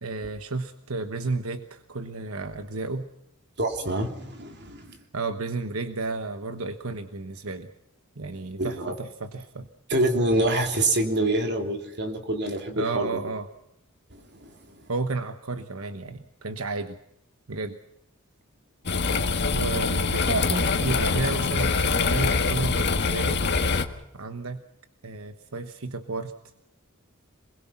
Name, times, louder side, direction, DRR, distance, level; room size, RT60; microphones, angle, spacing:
voice 1, 0.0-3.1 5.1-7.7 8.2-9.7 12.8-13.5 14.9-17.0 17.5-17.8 19.5-23.4 24.1-24.6 25.0-26.3, right 3 dB, 85° right, 9 dB, 1.2 m, -32 dB
voice 2, 3.6-5.0 8.6-8.9 9.9-13.2 14.1-14.9, right 1 dB, 55° right, 4 dB, 3.4 m, -26 dB
sound 1, 18.9-23.9, left 4 dB, 55° left, 1.6 m, -24 dB
27.5 x 21.0 x 5.9 m, 0.82 s
head